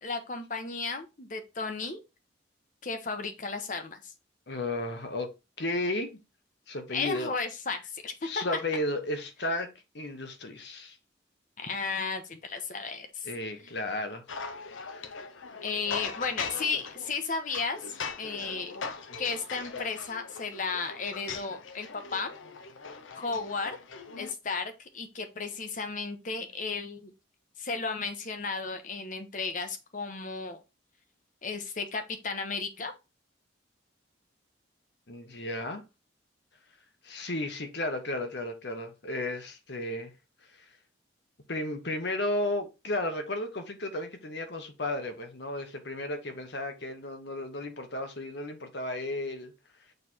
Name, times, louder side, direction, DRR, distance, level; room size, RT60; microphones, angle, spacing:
voice 1, 0.0-2.0 2.8-4.1 6.9-8.6 11.6-13.3 15.6-18.7 19.2-22.3 23.1-23.8 24.2-27.1 27.6-30.6 31.4-32.9, left 4 dB, 45° left, 0.9 m, -34 dB
voice 2, 4.5-5.3 5.6-6.2 6.7-7.3 8.2-9.7 9.9-11.0 13.2-14.2 14.9-15.1 35.1-35.8 37.0-40.1 41.5-49.5, left 1 dB, 60° left, 1.1 m, -33 dB
sound 1, 14.3-24.3, left 5 dB, 85° left, 0.8 m, -41 dB
6.7 x 3.3 x 4.3 m
head